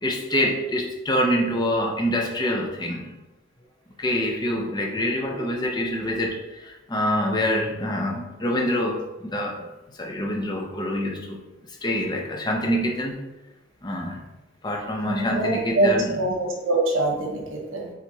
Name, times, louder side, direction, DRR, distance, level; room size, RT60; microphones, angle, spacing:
voice 1, 0.0-3.1 4.0-9.7 10.0-11.4 11.8-13.1 13.8-14.2 14.6-16.2, equal, 20° left, 1 dB, 0.5 m, -26 dB
voice 2, 15.1-17.9, right 2 dB, 75° right, 0 dB, 1.0 m, -24 dB
4.5 x 4.0 x 2.7 m, 1.1 s
head